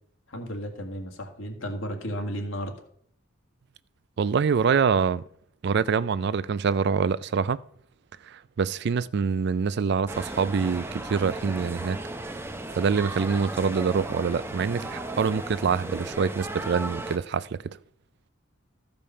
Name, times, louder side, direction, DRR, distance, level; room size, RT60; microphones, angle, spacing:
voice 1, 0.3-2.7, equal, 85° left, 1.9 m, -33 dB
voice 2, 4.2-5.2 5.6-7.6 8.2-12.0 12.7-17.8, right 5 dB, 55° right, 0.4 m, -25 dB
sound 1, 10.1-17.2, right 1 dB, 10° right, 0.6 m, -35 dB
14.0 x 5.3 x 5.5 m
head